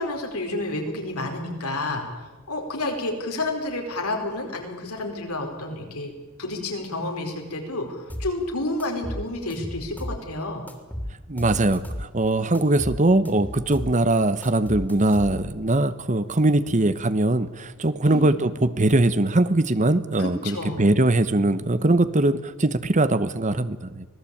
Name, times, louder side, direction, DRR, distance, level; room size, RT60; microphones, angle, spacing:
voice 1, 0.0-2.1 2.5-6.1 6.4-10.6 18.0-18.3 20.2-20.9, left 2 dB, 85° left, 3 dB, 5.0 m, -30 dB
sound 1, 8.1-8.3 8.8-10.2 10.7-12.1 12.5-14.0 14.4-15.6, equal, 10° left, 2.9 m, -34 dB
voice 2, 11.3-24.1, right 2 dB, 35° right, 14 dB, 1.0 m, -21 dB
25.5 x 18.5 x 8.6 m, 1.2 s
head